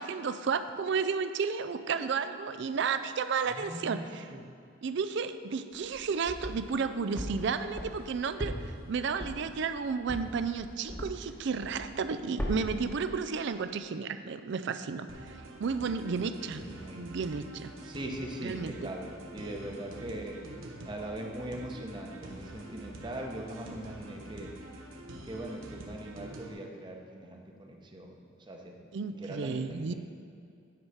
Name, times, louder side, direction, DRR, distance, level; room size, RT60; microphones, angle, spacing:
voice 1, 0.0-4.3 4.8-15.1 15.6-16.6 16.9-17.7 18.4-18.7 28.9-29.9, right 5 dB, 60° right, 11 dB, 0.4 m, -32 dB
voice 2, 3.5-4.1 4.3-4.4 16.2-17.1 17.8-20.4 20.8-24.5 25.2-29.9, right 1 dB, 25° right, 1 dB, 0.8 m, -41 dB
sound 1, 5.7-6.8 7.2-11.3 11.6-12.1 12.4-12.9, equal, 10° left, 1.0 m, -38 dB
sound 2, 15.1-26.5, right 1 dB, 85° right, 1.0 m, -46 dB
9.6 x 4.8 x 5.6 m, 2.5 s
head